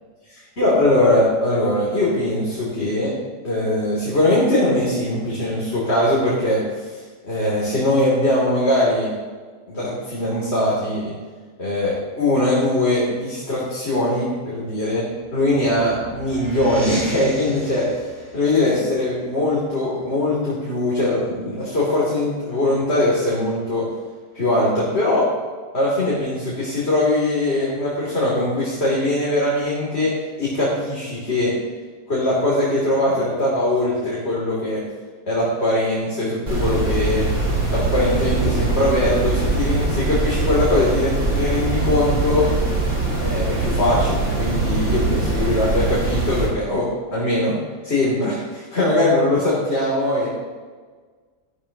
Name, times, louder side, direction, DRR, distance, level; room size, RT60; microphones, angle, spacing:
voice 1, 0.6-3.1 3.4-7.0 7.2-9.1 9.7-11.1 11.6-15.0 15.3-17.8 18.3-23.8 24.3-25.2 25.7-30.1 30.4-31.5 32.1-34.8 35.3-37.3 37.7-42.4 43.1-46.8 47.1-47.5 47.8-50.3, left 1 dB, 50° left, -7 dB, 3.3 m, -21 dB
sound 1, 15.2-20.3, right 1 dB, 10° right, 3.3 m, -38 dB
sound 2, 36.5-46.5, right 3 dB, 60° right, 3.6 m, -22 dB
13.5 x 12.5 x 3.0 m, 1.5 s
omnidirectional pair, 1.5 m